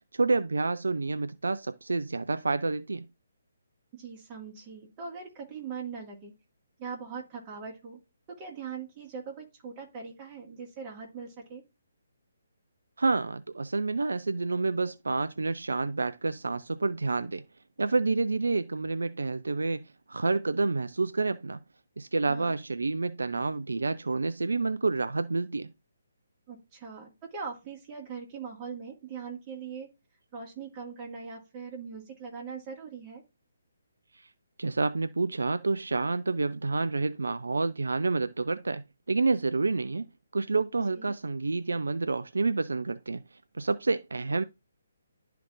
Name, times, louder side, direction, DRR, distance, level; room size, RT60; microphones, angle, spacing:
voice 1, 0.1-3.0 13.0-17.5 17.8-21.6 22.0-25.7 34.1-34.3 34.6-40.1 40.3-44.4, right 3 dB, 65° right, 0.3 m, -29 dB
voice 2, 3.9-6.3 6.8-8.0 8.3-11.6 22.3-22.5 26.5-29.9 30.3-33.2 41.0-41.1, right 6 dB, 20° right, 1.9 m, -41 dB
11.5 x 4.5 x 2.5 m
figure-of-eight pair, 140°, 0 cm